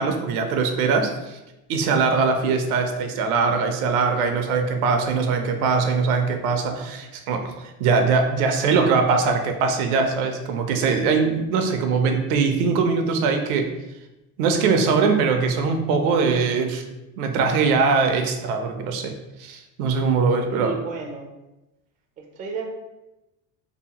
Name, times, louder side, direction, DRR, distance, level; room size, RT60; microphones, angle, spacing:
voice 1, 0.0-1.4 1.7-7.5 7.8-13.7 14.4-16.8 17.2-19.1 19.4-20.7, right 4 dB, 85° right, 5 dB, 0.6 m, -21 dB
voice 2, 20.5-21.4 22.2-22.7, right 4 dB, 20° right, 2 dB, 0.3 m, -33 dB
2.8 x 2.0 x 2.8 m, 0.96 s
supercardioid pair, 100°, 42 cm